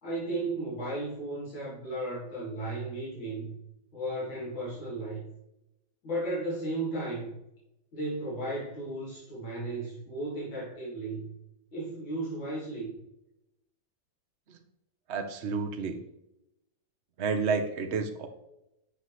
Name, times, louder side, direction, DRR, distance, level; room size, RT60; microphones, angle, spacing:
voice 1, 0.0-3.6 3.9-5.2 6.0-7.4 7.9-11.4 11.7-12.9, right 2 dB, 70° left, -7 dB, 2.8 m, -35 dB
voice 2, 15.1-16.0 17.2-18.3, right 5 dB, 50° right, 5 dB, 0.8 m, -30 dB
8.3 x 5.5 x 3.1 m, 0.87 s
omnidirectional pair, 2.1 m